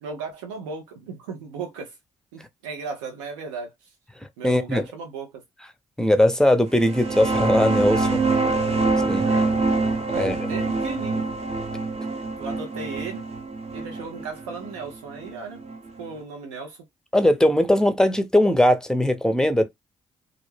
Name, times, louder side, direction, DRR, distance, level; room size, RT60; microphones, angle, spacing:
voice 1, 0.0-2.0 2.3-3.9 4.4-5.4 9.2-9.6 10.1-11.3 12.4-13.2 13.7-15.6 16.0-16.9, right 4 dB, 90° right, 0.5 m, -36 dB
voice 2, 4.4-4.8 6.0-8.2 9.1-9.3 10.1-10.4 17.1-19.7, left 1 dB, 5° left, 0.6 m, -19 dB
sound 1, 6.8-16.1, right 3 dB, 40° right, 0.8 m, -25 dB
2.4 x 2.0 x 3.2 m
hypercardioid pair, 45°, 16 cm